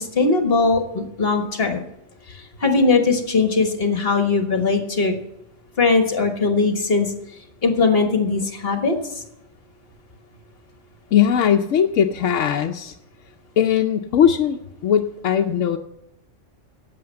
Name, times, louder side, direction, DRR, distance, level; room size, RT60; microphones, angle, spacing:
voice 1, 0.0-1.8 2.3-5.1 5.8-7.1 7.6-9.2, left 4 dB, 50° left, 5 dB, 1.7 m, -20 dB
voice 2, 11.1-13.0 13.6-15.8, left 9 dB, 85° left, 3 dB, 1.0 m, -19 dB
11.5 x 8.3 x 7.5 m, 0.85 s
omnidirectional pair, 1.3 m